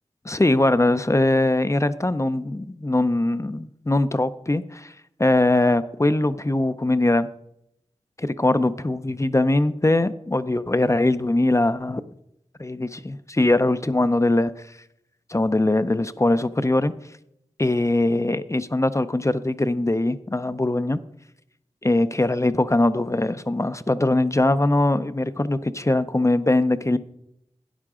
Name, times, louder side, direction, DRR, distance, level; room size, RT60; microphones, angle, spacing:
voice 1, 0.2-4.9 5.2-7.3 8.2-12.0 12.6-14.5 15.3-16.9 17.6-21.0 21.8-27.0, left 2 dB, 25° left, 13 dB, 0.5 m, -21 dB
12.5 x 10.5 x 3.7 m, 0.78 s
wide cardioid pair, 60°, 12 cm